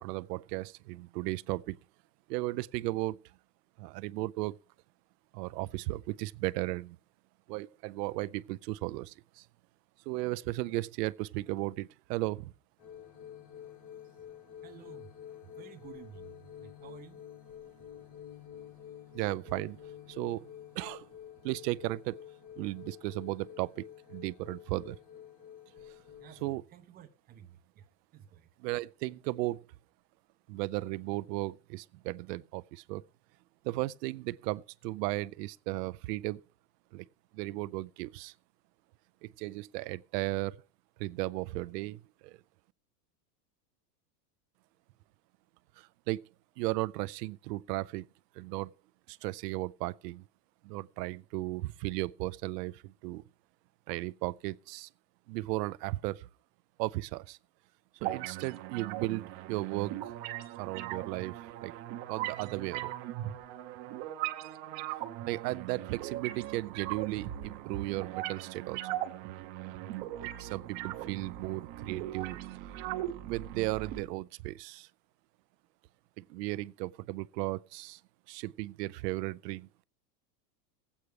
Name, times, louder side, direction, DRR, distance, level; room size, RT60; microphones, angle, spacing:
voice 1, 0.0-1.8 2.3-3.2 3.8-4.6 5.3-7.0 7.5-9.4 10.1-12.5 19.1-19.8 20.1-20.5 20.8-21.1 21.4-22.2 22.6-23.8 24.1-25.0 26.4-26.6 28.6-29.6 30.5-33.0 33.6-36.4 36.9-37.1 37.3-38.3 39.2-40.6 41.0-42.4 45.8-46.2 46.6-48.1 48.4-48.7 49.1-50.2 50.6-53.2 53.9-54.9 55.3-56.3 56.8-57.4 58.0-60.1 60.6-61.7 62.1-62.9 65.3-68.8 70.2-72.4 73.2-74.9 76.2-78.0 78.3-79.7, right 19 dB, 75° right, 0.6 m, -35 dB
sound 1, 12.8-26.6, left 9 dB, 30° left, 1.0 m, -49 dB
voice 2, 14.6-15.1 15.6-17.2 26.2-27.9 28.1-28.5, right 9 dB, 20° right, 0.5 m, -53 dB
sound 2, 58.0-74.0, right 14 dB, 45° right, 0.8 m, -39 dB
20.0 x 8.3 x 3.2 m
supercardioid pair, 155°, 49 cm